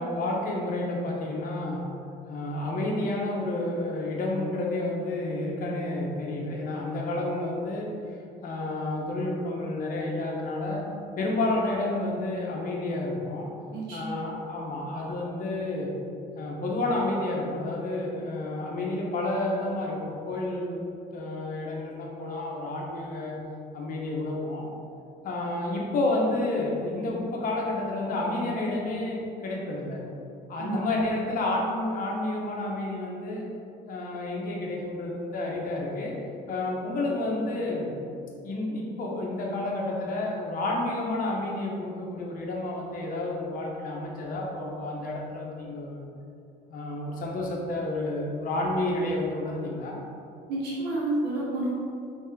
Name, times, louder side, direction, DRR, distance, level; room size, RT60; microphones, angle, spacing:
voice 1, 0.0-1.9 2.3-7.9 8.4-10.9 11.2-13.5 13.9-15.9 16.3-20.8 21.1-23.4 23.7-24.7 25.2-30.0 30.5-33.5 33.9-36.2 36.5-37.9 38.4-46.0 46.7-50.0, left 2 dB, 55° left, -2 dB, 1.0 m, -30 dB
voice 2, 13.7-14.1 30.6-30.8 50.5-51.7, right 2 dB, 75° right, -7 dB, 1.0 m, -29 dB
4.2 x 3.3 x 3.8 m, 2.5 s
cardioid pair, 110°, 17 cm